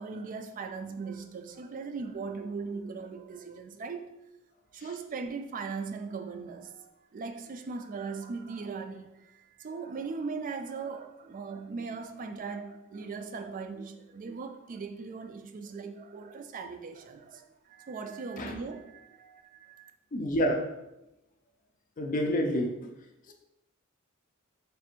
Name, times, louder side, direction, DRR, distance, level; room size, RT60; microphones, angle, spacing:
voice 1, 0.0-4.2 4.7-19.9, right 4 dB, 40° right, 0.3 m, -39 dB
voice 2, 20.1-20.7 22.0-22.9 23.3-23.4, equal, 40° left, 0.4 m, -28 dB
3.2 x 2.5 x 4.4 m
head